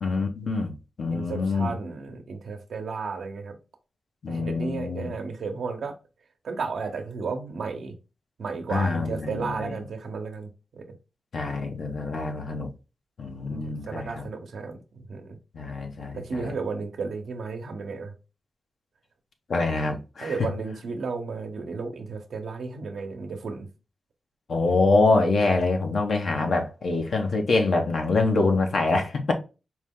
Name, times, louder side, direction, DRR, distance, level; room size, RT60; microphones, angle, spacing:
voice 1, 0.0-1.7 4.2-5.1 8.7-9.7 11.3-12.7 13.2-14.3 15.5-16.5 19.5-20.5 24.5-29.3, left 3 dB, 75° left, 0.9 m, -25 dB
voice 2, 1.1-3.6 4.3-5.9 6.4-8.0 8.4-10.8 13.4-15.4 16.1-18.1 20.2-23.7, right 4 dB, 85° right, 0.8 m, -33 dB
4.6 x 2.2 x 3.6 m
cardioid pair, 65°, 0 cm